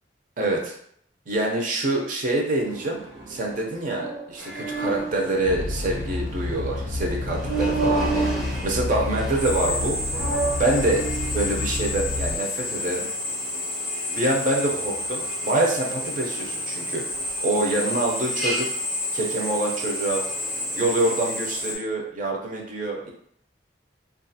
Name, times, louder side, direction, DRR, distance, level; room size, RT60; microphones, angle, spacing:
voice 1, 0.4-0.7 1.3-3.0 3.3-10.0 10.6-11.0 11.3-13.1 14.1-17.0 17.4-18.7 19.1-20.2 20.7-23.1, right 2 dB, 50° right, 0 dB, 0.5 m, -26 dB
sound 1, 2.6-6.7 7.4-9.0 9.3-11.7, right 3 dB, 75° right, 0.8 m, -31 dB
Drill, 4.4-21.7, left 1 dB, ahead, 0.5 m, -31 dB
sound 2, 5.4-12.4, left 2 dB, 55° left, 0.3 m, -30 dB
2.4 x 2.3 x 2.6 m, 0.67 s
head